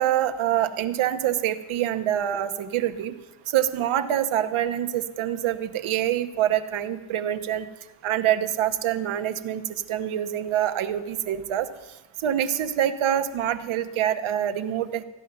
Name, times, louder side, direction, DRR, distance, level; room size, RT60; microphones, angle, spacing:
voice 1, 0.0-3.1 3.5-7.7 8.0-11.7 12.2-15.0, right 11 dB, 75° right, 10 dB, 1.1 m, -25 dB
14.5 x 10.0 x 6.9 m, 1.1 s
cardioid pair, 145°, 49 cm